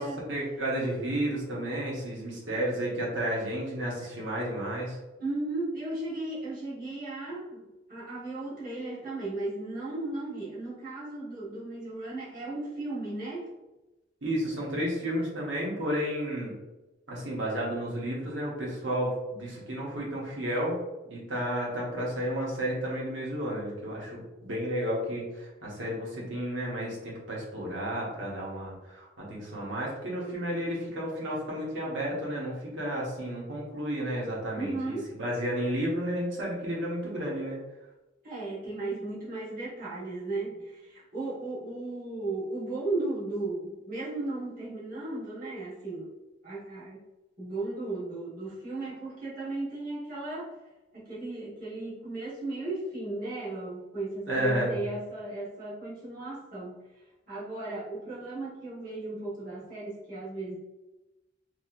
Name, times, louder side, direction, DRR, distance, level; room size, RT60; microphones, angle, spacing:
voice 1, 0.3-5.0 14.2-16.5 17.1-20.8 21.1-37.6 54.3-54.7, equal, 70° right, -4 dB, 1.1 m, -32 dB
voice 2, 5.2-13.5 34.5-35.1 38.2-46.1 46.4-47.0 47.4-50.5 50.9-56.8 57.3-60.6, right 2 dB, 45° right, -9 dB, 1.3 m, -35 dB
3.0 x 2.8 x 2.4 m, 1.0 s
head